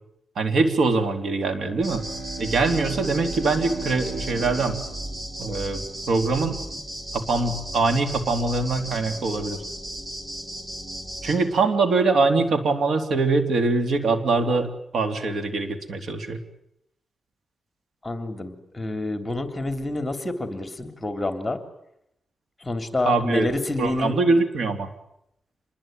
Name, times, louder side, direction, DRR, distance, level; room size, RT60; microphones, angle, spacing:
voice 1, 0.4-2.0 2.4-4.8 5.4-6.6 7.1-9.6 11.2-16.4 23.1-23.5 23.8-24.9, right 3 dB, 70° right, 8 dB, 3.4 m, -23 dB
Bowed string instrument, 1.3-6.1, right 4 dB, 85° right, 6.9 m, -38 dB
sound 1, 1.8-11.4, right 1 dB, 35° right, 6.8 m, -35 dB
sound 2, 3.6-11.4, equal, ahead, 4.7 m, -45 dB
voice 2, 18.0-21.6 22.6-24.2, left 2 dB, 15° left, 8 dB, 3.5 m, -28 dB
27.0 x 21.5 x 9.3 m, 0.78 s
wide cardioid pair, 110°, 0 cm